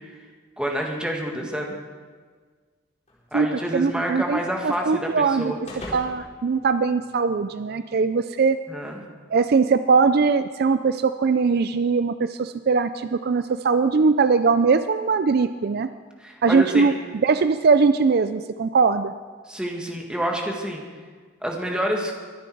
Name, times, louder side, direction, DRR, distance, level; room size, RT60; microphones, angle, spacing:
voice 1, 0.6-1.7 3.3-5.6 8.7-9.0 16.2-16.9 19.5-20.8 21.4-22.1, equal, 5° right, 0 dB, 1.9 m, -28 dB
sound 1, 3.1-7.5, left 1 dB, 35° left, 4.2 m, -44 dB
voice 2, 3.7-5.5 5.9-8.6 9.3-15.9 16.4-16.9 17.2-19.1, right 4 dB, 55° right, 11 dB, 0.4 m, -21 dB
23.5 x 10.5 x 4.7 m, 1.5 s
head